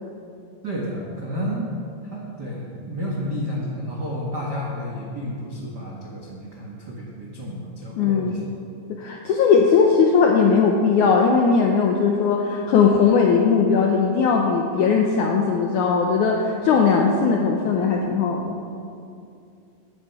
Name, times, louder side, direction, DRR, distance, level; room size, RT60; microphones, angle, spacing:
voice 1, 0.6-8.4, equal, 90° right, -4 dB, 0.9 m, -31 dB
voice 2, 8.0-8.4 9.0-18.5, left 5 dB, 90° left, 1 dB, 1.7 m, -19 dB
14.5 x 9.7 x 5.8 m, 2.6 s
omnidirectional pair, 4.7 m